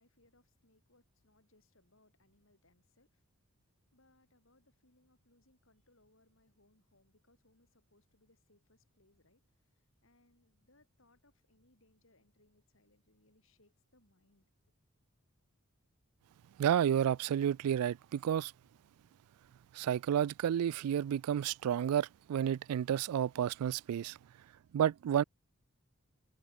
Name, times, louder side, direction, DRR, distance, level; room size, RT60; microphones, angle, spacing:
voice 1, 0.0-3.4 3.6-14.7, left 2 dB, 60° left, 5.2 m, -71 dB
voice 2, 16.6-18.5 19.7-24.2 24.7-25.2, right 9 dB, 85° right, 0.3 m, -31 dB
head